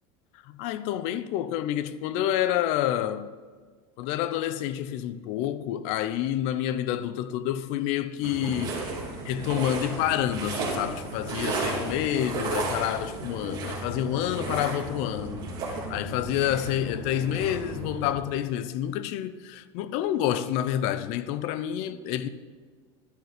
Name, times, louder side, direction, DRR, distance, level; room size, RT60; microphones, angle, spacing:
voice 1, 0.5-3.3 4.0-8.8 9.2-22.3, left 11 dB, 55° left, 0.6 m, -28 dB
sound 1, 8.2-18.2, right 3 dB, 35° right, 2.7 m, -34 dB
11.5 x 7.7 x 5.1 m
supercardioid pair, 145°, 13 cm